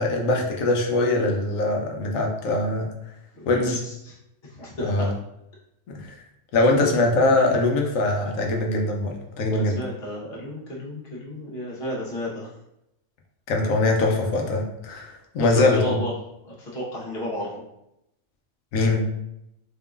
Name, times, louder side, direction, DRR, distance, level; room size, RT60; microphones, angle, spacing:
voice 1, 0.0-2.9 3.5-3.8 4.8-5.1 5.9-6.1 6.5-9.8 13.5-16.0 18.7-19.1, left 2 dB, 90° left, 1 dB, 1.2 m, -22 dB
voice 2, 3.4-4.2 4.4-5.1 6.7-7.0 9.6-12.5 15.7-16.1 16.4-17.5, equal, 50° left, -5 dB, 1.4 m, -33 dB
4.1 x 3.7 x 2.4 m, 0.83 s
omnidirectional pair, 1.3 m